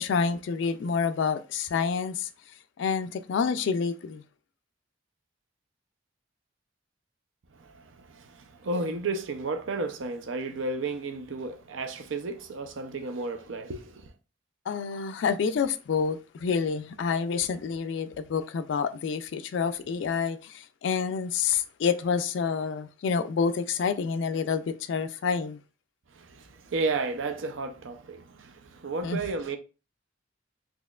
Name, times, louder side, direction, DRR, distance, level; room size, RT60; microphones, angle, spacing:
voice 1, 0.0-2.3 2.8-4.2 14.7-25.6 29.0-29.2, left 6 dB, 70° left, 0.3 m, -28 dB
voice 2, 7.6-14.1 26.1-29.6, right 3 dB, 75° right, 0.5 m, -33 dB
4.1 x 2.9 x 2.3 m
head